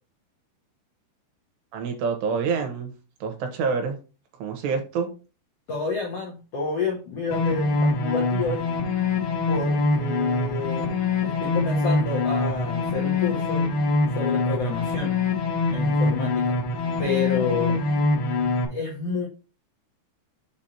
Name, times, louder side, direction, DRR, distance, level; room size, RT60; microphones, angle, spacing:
voice 1, 1.7-2.9 3.2-4.0 4.4-5.1, right 5 dB, 85° right, 4 dB, 3.3 m, -27 dB
voice 2, 5.7-8.6 9.5-10.9 11.2-13.7 14.1-15.2 15.7-16.6 17.0-17.8 18.7-19.3, left 4 dB, 85° left, -2 dB, 1.3 m, -29 dB
sound 1, 7.3-18.6, left 3 dB, 65° left, 2.5 m, -24 dB
7.1 x 2.9 x 5.1 m, 0.33 s
omnidirectional pair, 5.0 m